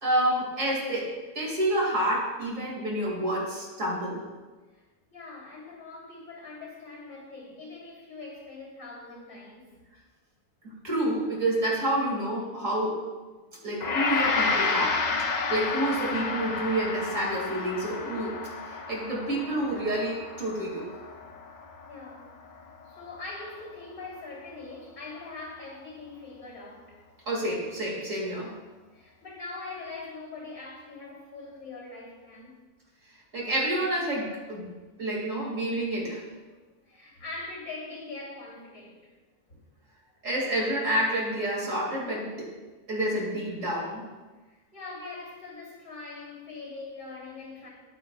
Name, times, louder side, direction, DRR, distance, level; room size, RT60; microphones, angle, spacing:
voice 1, 0.0-4.2 10.6-13.0 13.6-15.0 15.5-18.3 18.7-20.9 27.3-28.5 33.3-34.7 35.0-36.2 40.2-42.5 42.9-44.0, right 1 dB, 60° right, -3 dB, 2.6 m, -28 dB
voice 2, 4.7-9.8 21.8-27.0 28.9-32.7 33.3-33.4 36.8-39.1 39.5-39.6 44.4-47.7, left 3 dB, 70° left, -4 dB, 3.4 m, -42 dB
Gong, 13.8-23.0, left 4 dB, 55° left, 0.5 m, -31 dB
11.0 x 8.8 x 2.3 m, 1.3 s
omnidirectional pair, 1.5 m